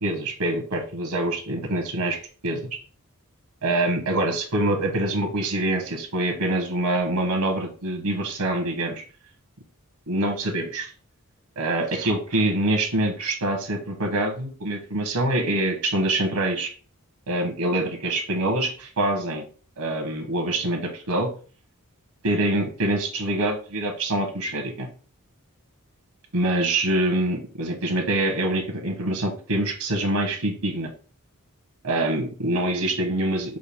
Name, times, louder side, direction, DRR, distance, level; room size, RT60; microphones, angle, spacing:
voice 1, 0.0-2.2 2.4-2.6 3.6-9.0 10.1-10.9 11.6-16.7 17.3-19.4 19.8-21.3 22.2-24.9 26.3-30.9 31.8-33.6, right 1 dB, 80° right, 4 dB, 1.0 m, -25 dB
6.1 x 2.3 x 3.5 m, 0.39 s
head